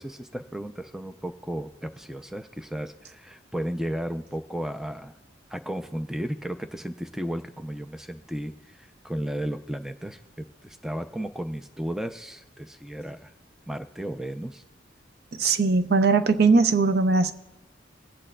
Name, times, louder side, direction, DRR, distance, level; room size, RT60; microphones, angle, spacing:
voice 1, 0.0-5.1 5.5-13.3 13.7-14.6, right 1 dB, 5° right, 8 dB, 0.3 m, -34 dB
voice 2, 15.4-17.3, right 4 dB, 60° right, 10 dB, 0.5 m, -20 dB
24.5 x 8.6 x 2.2 m, 1.0 s
head